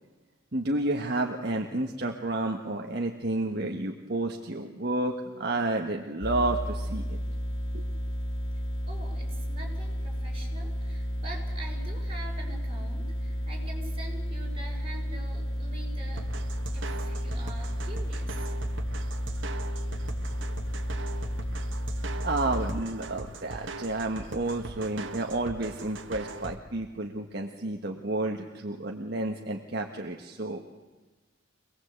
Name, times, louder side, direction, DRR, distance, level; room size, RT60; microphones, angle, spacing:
voice 1, 0.5-7.2 7.7-7.9 22.2-30.8, right 2 dB, 55° right, 2 dB, 1.5 m, -31 dB
sound 1, 6.2-22.8, equal, 85° left, 1.8 m, -32 dB
voice 2, 8.9-16.2 16.7-18.4, right 2 dB, 30° right, -1 dB, 6.4 m, -45 dB
sound 2, 16.2-26.6, right 2 dB, 80° right, 1.7 m, -40 dB
26.0 x 19.5 x 8.2 m, 1.2 s
head